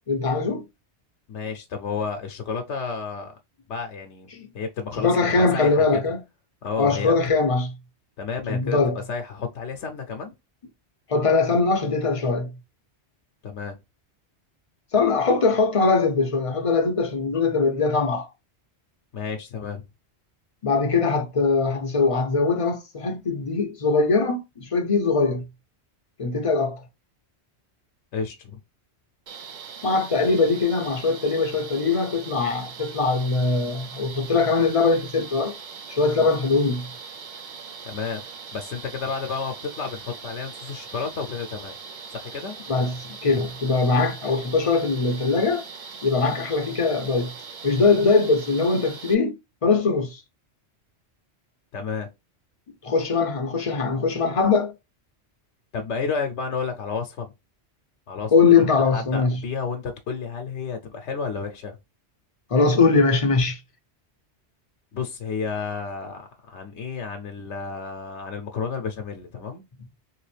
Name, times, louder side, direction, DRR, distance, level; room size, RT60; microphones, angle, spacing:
voice 1, 0.1-0.6 4.3-4.5 5.0-6.2 6.8-7.8 8.5-9.0 11.1-12.5 14.9-18.3 20.6-25.5 26.2-26.8 29.8-35.5 35.9-36.9 42.7-45.6 46.0-47.3 47.6-50.2 52.8-54.7 58.3-59.4 62.5-63.6, left 4 dB, 40° left, 0.5 m, -21 dB
voice 2, 1.3-3.4 3.7-4.3 4.5-6.0 6.6-7.1 8.2-10.3 13.4-13.8 19.1-19.8 28.1-28.6 37.8-38.2 38.5-41.8 42.1-42.6 51.7-52.1 55.7-57.3 58.1-61.8 64.9-69.6, left 5 dB, 85° left, 0.9 m, -31 dB
sound 1, 29.3-49.1, right 5 dB, 55° right, 0.5 m, -41 dB
3.3 x 2.9 x 3.2 m
omnidirectional pair, 1.1 m